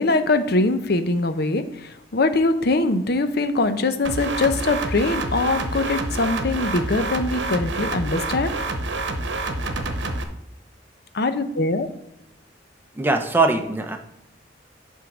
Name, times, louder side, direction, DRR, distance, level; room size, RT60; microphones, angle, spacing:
voice 1, 0.0-8.5 11.1-11.9, left 2 dB, 60° left, 9 dB, 0.7 m, -22 dB
sound 1, 4.0-10.2, right 2 dB, 75° right, 0.9 m, -27 dB
voice 2, 13.0-14.0, right 3 dB, 10° right, 4 dB, 0.7 m, -21 dB
9.0 x 3.7 x 6.1 m, 0.82 s
head